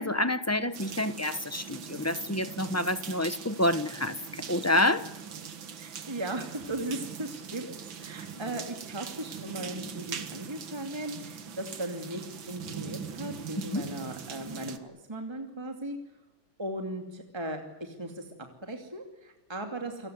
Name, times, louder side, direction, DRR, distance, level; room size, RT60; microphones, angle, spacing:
voice 1, 0.0-5.1 13.6-13.9, left 1 dB, 15° left, 11 dB, 0.7 m, -28 dB
sound 1, 0.7-14.8, right 7 dB, 75° right, 2.4 m, -42 dB
voice 2, 5.8-16.0 16.6-18.3 18.6-20.1, right 1 dB, 15° right, 3 dB, 2.6 m, -37 dB
29.5 x 18.5 x 9.5 m, 1.0 s
omnidirectional pair, 2.1 m